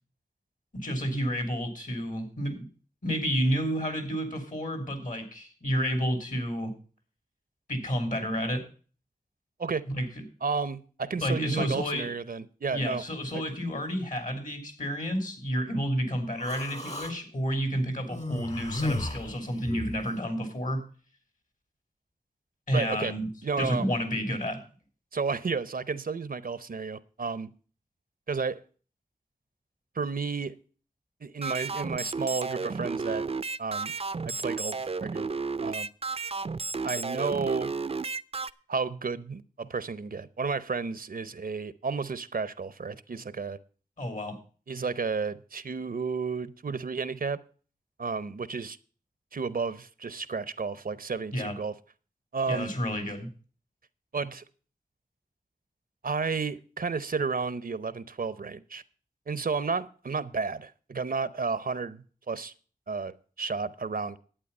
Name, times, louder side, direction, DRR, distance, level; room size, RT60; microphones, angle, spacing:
voice 1, 0.7-2.6 3.0-6.7 7.7-8.6 9.9-10.2 11.2-12.1 12.7-20.8 22.7-23.3 23.6-24.6 44.0-44.4 51.3-51.6 52.5-53.3, equal, 65° left, 6 dB, 3.1 m, -30 dB
voice 2, 10.4-13.0 13.3-13.5 22.7-23.1 23.4-23.9 25.1-27.5 28.3-28.6 29.9-30.5 31.2-33.3 33.6-33.9 34.2-35.9 36.8-37.7 38.7-43.6 44.7-47.4 48.0-48.8 49.3-51.7 52.3-52.7 54.1-54.4 56.0-58.8 59.3-62.5 62.9-64.2, right 4 dB, 75° right, 16 dB, 0.7 m, -32 dB
Human voice, 16.4-17.1 18.1-20.0, left 1 dB, 45° left, 1.9 m, -33 dB
sound 1, 31.4-38.5, right 4 dB, 45° right, 0.4 m, -33 dB
11.5 x 8.8 x 5.3 m, 0.40 s
wide cardioid pair, 60°, 15 cm